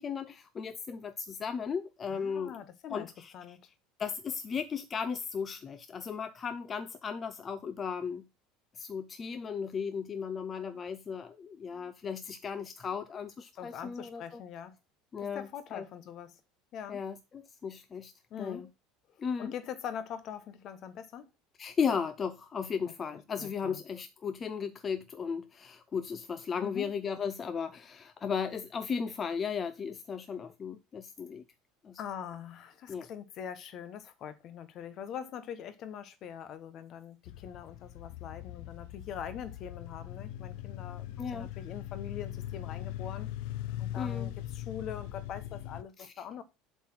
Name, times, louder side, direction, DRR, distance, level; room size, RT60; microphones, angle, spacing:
voice 1, 0.0-2.5 2.9-3.6 4.0-8.2 8.7-14.4 15.1-15.9 16.9-18.1 18.4-18.7 19.2-19.5 21.6-31.4 31.8-32.0 32.9-33.1 41.2-41.5 44.0-44.3 46.0-46.1, left 6 dB, 30° left, 0.6 m, -36 dB
voice 2, 2.1-3.6 13.6-14.8 15.2-16.4 16.7-17.0 18.3-18.6 19.4-21.3 22.8-22.9 23.4-23.8 26.6-26.9 32.0-43.3 43.8-46.4, left 8 dB, 50° left, 1.1 m, -43 dB
Land and Sky, 37.3-45.8, left 13 dB, 75° left, 0.4 m, -40 dB
7.6 x 4.1 x 5.9 m
supercardioid pair, 110°, 0 cm